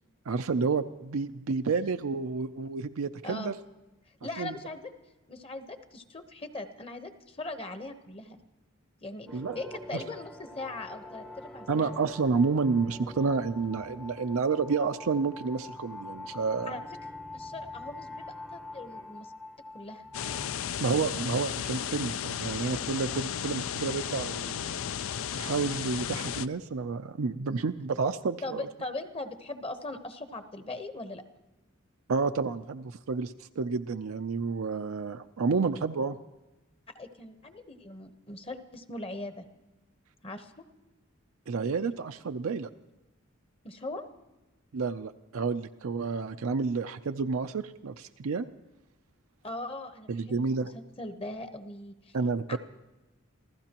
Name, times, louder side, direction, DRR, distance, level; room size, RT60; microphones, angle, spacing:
voice 1, 0.3-3.5 4.4-4.5 9.3-9.6 9.9-10.0 11.7-16.7 20.8-24.8 25.3-28.7 32.1-36.2 41.5-42.7 44.7-48.5 50.1-50.7 52.1-52.6, right 4 dB, 75° right, 7 dB, 0.5 m, -30 dB
voice 2, 3.2-3.5 4.2-4.9 5.3-8.4 9.0-9.3 9.5-12.0 16.7-16.8 17.3-19.3 19.7-20.0 28.4-31.2 36.9-39.4 40.2-40.5 43.6-44.1 49.4-52.2 52.5-52.6, left 2 dB, 30° left, 8 dB, 1.0 m, -40 dB
sound 1, 9.3-20.6, left 2 dB, 5° left, 0.7 m, -45 dB
sound 2, 20.1-26.5, left 8 dB, 70° left, 0.4 m, -34 dB
27.0 x 15.5 x 2.9 m, 1.1 s
head